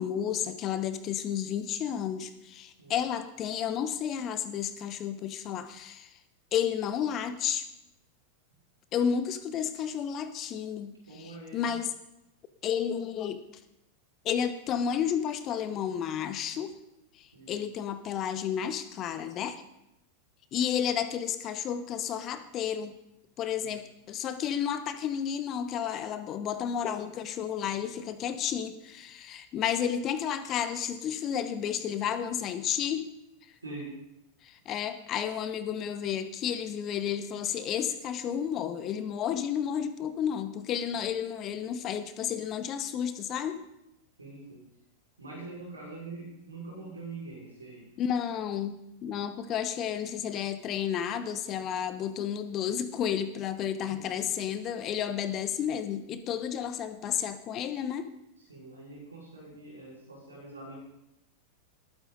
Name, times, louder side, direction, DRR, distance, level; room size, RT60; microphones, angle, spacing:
voice 1, 0.0-6.1 6.5-7.7 8.9-11.9 12.6-13.4 14.2-16.7 17.2-19.6 20.5-22.9 23.4-33.1 34.4-43.6 48.0-48.8 49.0-58.1, left 8 dB, 35° left, 12 dB, 1.0 m, -32 dB
voice 2, 11.1-11.7 17.3-17.6 23.6-23.8 33.6-34.0 44.2-44.6 45.2-47.9 53.7-53.9 58.5-60.7, right 3 dB, 80° right, -5 dB, 5.7 m, -44 dB
20.0 x 9.4 x 4.0 m, 0.86 s
figure-of-eight pair, 90°, 0 cm